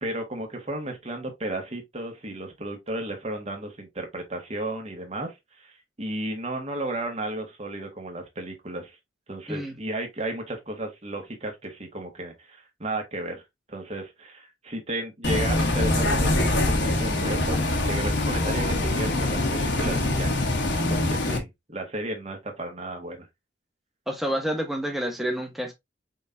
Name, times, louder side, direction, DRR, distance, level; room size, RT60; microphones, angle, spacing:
voice 1, 0.0-9.0 9.3-13.4 13.7-17.6 17.9-20.3 20.9-23.3, right 1 dB, 35° right, 1.5 m, -33 dB
Bus, 15.2-21.4, left 2 dB, 65° left, 1.2 m, -24 dB
voice 2, 24.1-25.7, equal, ahead, 1.1 m, -28 dB
5.3 x 3.7 x 2.6 m
head